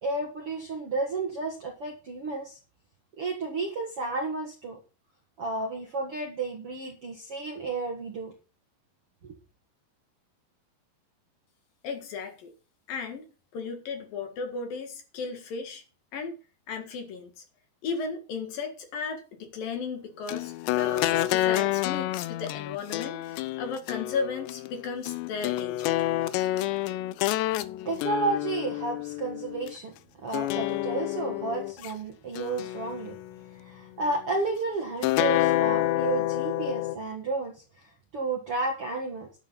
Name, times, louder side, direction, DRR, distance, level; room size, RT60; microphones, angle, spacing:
voice 1, 0.0-2.6 3.2-4.8 5.4-8.3 27.9-30.0 30.2-33.2 33.5-39.3, right 3 dB, 50° right, 1 dB, 1.8 m, -32 dB
voice 2, 11.8-12.5 12.9-13.3 13.5-15.8 16.1-16.3 16.7-17.3 17.8-25.9, left 5 dB, 60° left, 5 dB, 3.2 m, -35 dB
sound 1, 20.3-29.7 30.3-31.9 32.4-33.5 35.0-37.0, left 15 dB, 80° left, 2.9 m, -28 dB
12.0 x 11.0 x 4.1 m, 0.34 s
omnidirectional pair, 5.1 m